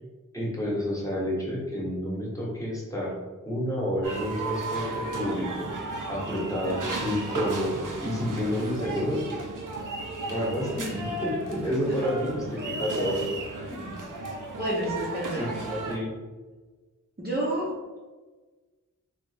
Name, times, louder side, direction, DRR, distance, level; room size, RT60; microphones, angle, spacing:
voice 1, 0.3-3.1 3.4-5.7 6.1-9.2 10.3-13.2 13.7-13.9 15.3-16.1, equal, 10° left, -5 dB, 1.2 m, -29 dB
sound 1, 4.0-16.0, right 2 dB, 70° right, 0.7 m, -35 dB
voice 2, 14.6-15.5 17.2-17.7, right 1 dB, 30° right, -5 dB, 0.8 m, -29 dB
3.3 x 3.2 x 3.3 m, 1.3 s
wide cardioid pair, 85°, 33 cm